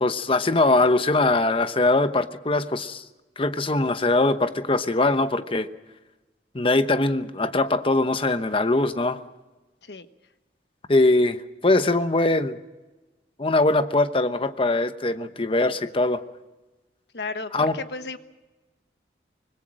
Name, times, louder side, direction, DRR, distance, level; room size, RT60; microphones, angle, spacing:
voice 1, 0.0-3.0 3.4-5.7 6.5-9.2 10.9-12.6 13.4-16.2 17.5-17.7, left 2 dB, 30° left, 10 dB, 1.0 m, -22 dB
voice 2, 17.1-18.2, left 3 dB, 70° left, 10 dB, 1.3 m, -34 dB
25.0 x 21.0 x 6.4 m, 1.1 s
head